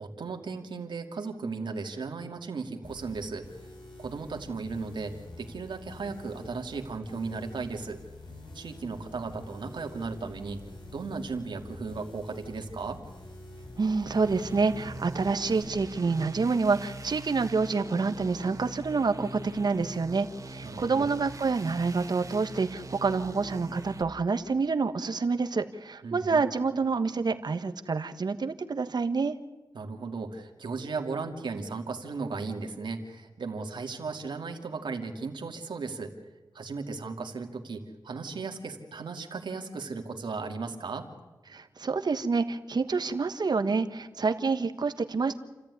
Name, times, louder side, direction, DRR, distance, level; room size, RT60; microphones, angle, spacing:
voice 1, 0.0-3.5 4.0-8.0 8.5-10.6 10.9-13.0 20.6-21.1 26.0-26.4 29.7-36.1 36.5-41.1, right 4 dB, 80° right, 4 dB, 2.5 m, -36 dB
sound 1, 2.8-15.6, left 2 dB, 80° left, 6.2 m, -47 dB
voice 2, 13.8-29.4 41.5-45.4, right 4 dB, 60° right, 9 dB, 1.4 m, -28 dB
sound 2, 14.1-24.0, right 2 dB, 45° right, 2.2 m, -42 dB
29.0 x 14.0 x 9.7 m, 1.2 s
cardioid pair, 60°, 8 cm